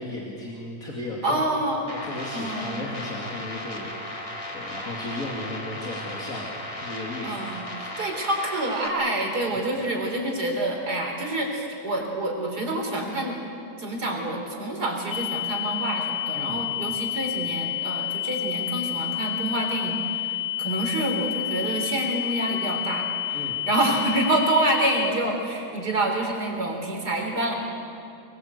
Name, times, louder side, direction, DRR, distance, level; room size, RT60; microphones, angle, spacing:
voice 1, 0.0-1.4 2.0-7.4 16.3-16.9 23.3-23.6, left 1 dB, 55° left, -4 dB, 3.1 m, -36 dB
voice 2, 1.2-1.9 2.3-2.8 7.2-13.4 13.8-27.5, right 1 dB, 70° right, 1 dB, 4.2 m, -27 dB
sound 1, 1.9-8.9, left 1 dB, 20° left, 2.3 m, -36 dB
sound 2, 15.1-25.1, left 12 dB, 75° left, 1.4 m, -29 dB
25.0 x 21.0 x 8.2 m, 2.7 s
omnidirectional pair, 1.8 m